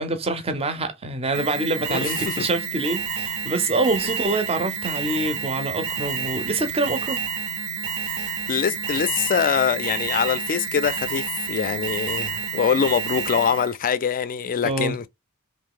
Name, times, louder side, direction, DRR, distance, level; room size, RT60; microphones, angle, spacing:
voice 1, 0.0-7.2 14.6-15.0, right 2 dB, 25° right, 0.5 m, -25 dB
Alarm, 1.3-13.7, right 6 dB, 65° right, 0.6 m, -29 dB
voice 2, 1.9-2.5 8.2-15.1, left 7 dB, 40° left, 0.3 m, -24 dB
3.0 x 2.7 x 3.7 m
head